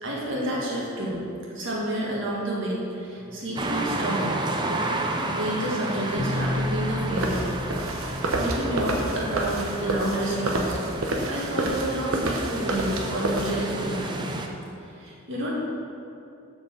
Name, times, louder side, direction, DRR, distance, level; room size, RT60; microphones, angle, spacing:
voice 1, 0.0-4.3 4.6-5.0 5.3-7.5 8.3-10.7 11.3-14.5 14.8-15.6, right 1 dB, 60° right, -4 dB, 1.8 m, -29 dB
sound 1, 3.6-14.5, right 2 dB, 20° right, 0.5 m, -32 dB
sound 2, 6.2-10.3, left 1 dB, 35° left, 0.7 m, -33 dB
sound 3, 7.2-13.6, right 1 dB, 75° right, 1.0 m, -29 dB
6.6 x 5.4 x 6.8 m, 2.7 s
head